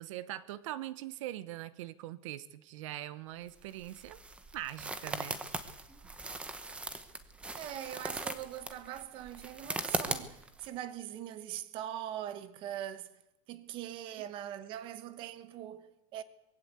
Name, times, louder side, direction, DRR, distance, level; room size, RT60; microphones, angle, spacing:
voice 1, 0.0-4.2 4.5-5.4 14.1-14.2, right 14 dB, 70° right, 1.0 m, -42 dB
sound 1, 3.5-10.7, right 2 dB, 5° right, 0.9 m, -39 dB
voice 2, 7.5-13.1 13.5-16.2, right 11 dB, 30° right, 1.1 m, -42 dB
22.0 x 16.0 x 8.2 m
supercardioid pair, 180°, 17 cm